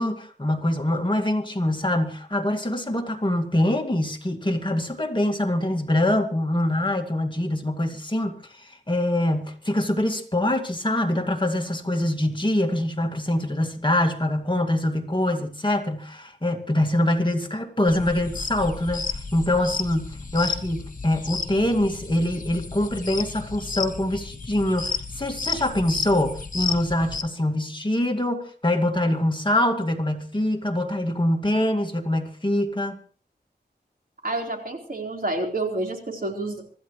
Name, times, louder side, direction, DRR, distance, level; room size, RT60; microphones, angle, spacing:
voice 1, 0.0-33.0, left 1 dB, 25° left, 3 dB, 2.2 m, -24 dB
sound 1, 17.9-27.2, left 5 dB, 50° left, 1.6 m, -32 dB
voice 2, 34.2-36.6, right 2 dB, 55° right, 1 dB, 4.2 m, -29 dB
25.5 x 14.0 x 3.2 m, 0.43 s
wide cardioid pair, 75°, 18 cm